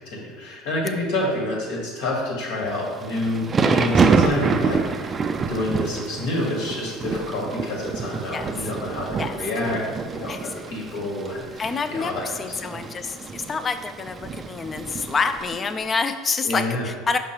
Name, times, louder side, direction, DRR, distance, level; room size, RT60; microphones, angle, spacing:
voice 1, 0.0-12.7 16.4-16.8, left 1 dB, 65° left, -2 dB, 1.7 m, -28 dB
Thunder / Rain, 2.8-15.9, right 5 dB, 30° right, 0.4 m, -27 dB
voice 2, 11.6-17.2, left 5 dB, 30° left, 9 dB, 0.5 m, -27 dB
5.9 x 5.5 x 2.9 m, 1.5 s
hypercardioid pair, 75°, 0 cm